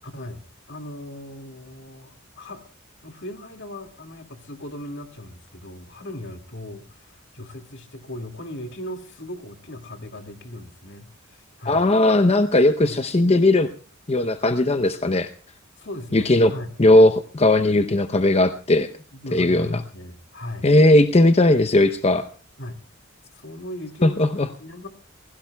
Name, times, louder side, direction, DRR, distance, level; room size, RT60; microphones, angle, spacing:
voice 1, 0.0-2.7 3.0-11.9 12.8-13.0 15.8-16.7 19.2-20.7 22.6-22.8 23.3-24.9, left 1 dB, 60° left, 6 dB, 2.1 m, -37 dB
voice 2, 11.7-13.7 14.1-15.3 16.1-16.5 16.8-18.9 19.3-19.8 20.6-22.3 24.0-24.5, left 1 dB, 30° left, 9 dB, 0.7 m, -17 dB
29.0 x 16.5 x 2.3 m, 0.39 s
head